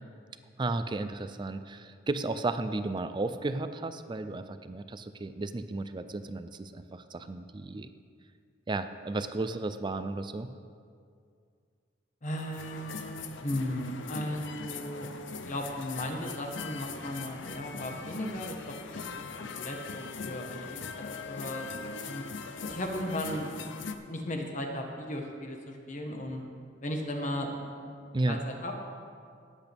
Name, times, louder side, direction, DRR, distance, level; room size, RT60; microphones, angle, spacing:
voice 1, 0.6-7.9 8.7-10.5 28.1-28.4, right 2 dB, 25° right, 10 dB, 0.4 m, -33 dB
voice 2, 12.2-15.1 15.5-18.6 18.9-19.0 19.4-21.6 22.0-22.2 22.6-26.4 26.8-27.9 28.3-28.8, left 1 dB, 40° left, 2 dB, 1.3 m, -36 dB
sound 1, 12.4-23.9, left 5 dB, 75° left, 0.6 m, -41 dB
18.5 x 8.3 x 3.5 m, 2.2 s
head